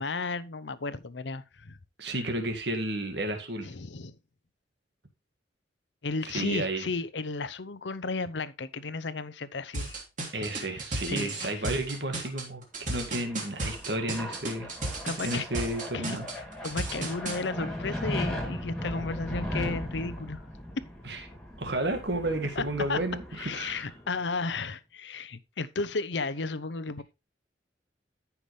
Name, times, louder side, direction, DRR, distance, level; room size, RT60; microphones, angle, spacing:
voice 1, 0.0-1.8 3.6-4.1 6.0-10.0 10.7-10.8 11.1-11.6 15.0-15.4 15.9-16.2 16.6-20.4 20.8-20.9 22.6-22.7 22.9-23.0 23.3-27.0, left 3 dB, 80° left, 0.8 m, -34 dB
voice 2, 2.0-3.7 6.3-6.9 10.3-14.7 15.2-16.2 21.0-21.2 21.6-23.9, right 1 dB, 70° right, 2.0 m, -32 dB
sound 1, 9.7-17.4, right 2 dB, 45° right, 3.2 m, -34 dB
sound 2, 13.0-24.3, left 1 dB, 5° left, 2.7 m, -38 dB
14.0 x 5.9 x 3.3 m
head